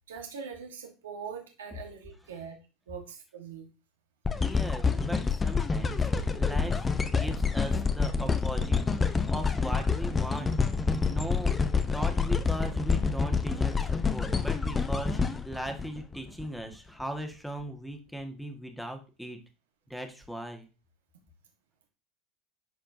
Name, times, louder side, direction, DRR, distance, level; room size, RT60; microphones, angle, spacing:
voice 1, 0.1-2.6 2.9-3.7, right 6 dB, 85° right, 3 dB, 1.4 m, -42 dB
sound 1, 4.2-16.4 17.0-17.1, left 5 dB, 20° left, 0.8 m, -27 dB
voice 2, 4.3-10.5 11.0-11.6 11.9-19.4 19.9-20.7, right 1 dB, ahead, 5 dB, 1.7 m, -39 dB
11.5 x 4.4 x 2.7 m, 0.31 s
hypercardioid pair, 75°, 0 cm